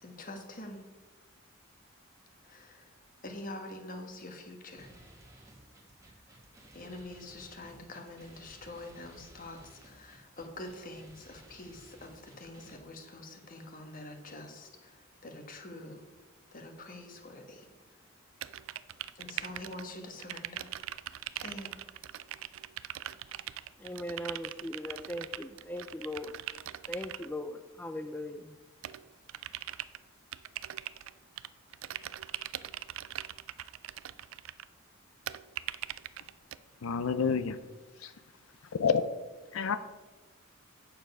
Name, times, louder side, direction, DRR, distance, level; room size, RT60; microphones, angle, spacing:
voice 1, 0.0-0.8 2.4-2.9 3.2-4.9 6.7-16.0 16.5-17.7 19.1-20.7 21.4-21.7, left 2 dB, 40° left, 1.3 m, -45 dB
sound 1, 4.7-12.8, right 1 dB, 15° right, 1.5 m, -57 dB
sound 2, 18.4-19.9 20.2-27.3 28.8-30.0 30.3-31.5 31.7-34.6 35.3-36.6, right 12 dB, 75° right, 0.4 m, -41 dB
voice 2, 23.8-26.4 26.9-28.6, left 1 dB, 10° left, 0.3 m, -39 dB
voice 3, 36.8-37.6 38.0-38.1 38.7-39.0 39.5-39.8, left 6 dB, 80° left, 0.5 m, -28 dB
9.0 x 7.0 x 5.4 m
head